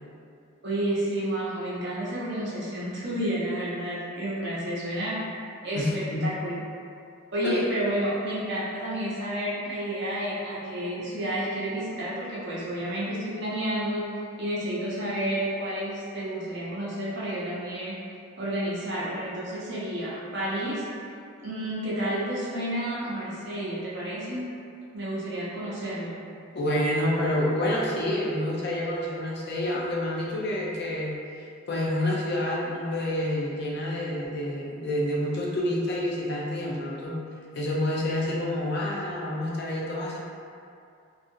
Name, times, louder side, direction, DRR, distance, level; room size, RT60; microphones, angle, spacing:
voice 1, 0.6-5.2 5.6-6.5 7.3-18.0 18.4-21.1 21.4-24.5 24.9-26.2, right 1 dB, 55° right, -8 dB, 0.7 m, -30 dB
voice 2, 5.7-6.2 7.4-7.6 26.5-31.1 31.7-37.2 37.5-40.2, left 1 dB, 50° left, -4 dB, 0.4 m, -28 dB
2.7 x 2.4 x 2.6 m, 2.4 s
head